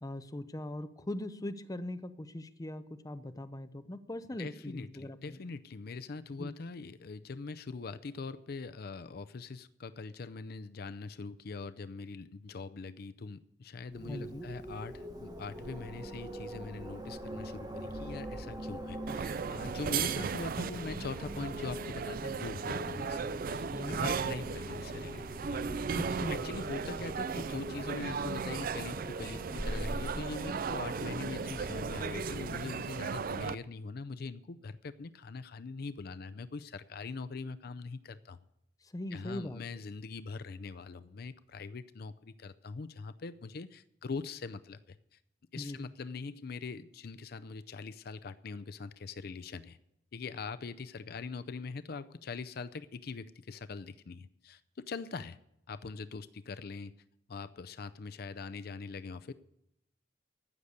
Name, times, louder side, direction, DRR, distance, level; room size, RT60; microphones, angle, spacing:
voice 1, 0.0-5.4 6.4-6.5 14.1-14.5 23.7-24.0 25.9-26.5 38.8-39.6 45.6-45.9, left 1 dB, 20° left, 10 dB, 0.7 m, -40 dB
voice 2, 4.4-26.0 26.3-38.4 39.1-45.2 45.5-49.8 50.1-55.4 55.7-56.9 57.3-59.3, left 4 dB, 60° left, 12 dB, 0.5 m, -42 dB
Wind, 13.9-32.9, equal, 20° right, 1.3 m, -43 dB
sound 1, 19.1-33.5, right 6 dB, 55° right, 0.4 m, -36 dB
15.0 x 6.6 x 8.4 m, 0.79 s
head